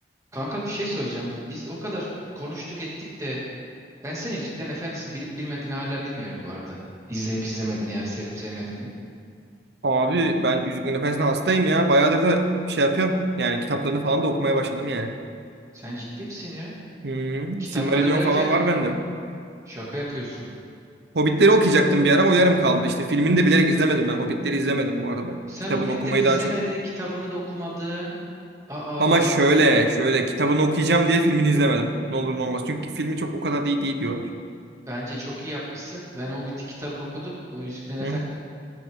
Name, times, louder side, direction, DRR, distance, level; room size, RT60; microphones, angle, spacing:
voice 1, 0.3-2.1 2.3-2.9 3.2-3.4 4.0-6.8 7.1-8.9 15.7-16.7 17.6-18.5 19.7-20.5 25.5-28.1 28.7-29.5 34.9-38.2, equal, 20° right, -6 dB, 2.3 m, -31 dB
voice 2, 9.8-15.1 17.0-19.0 21.1-25.4 25.7-26.4 29.0-34.3 38.0-38.2, right 2 dB, 70° right, 5 dB, 0.9 m, -21 dB
16.0 x 9.5 x 3.7 m, 2.3 s
head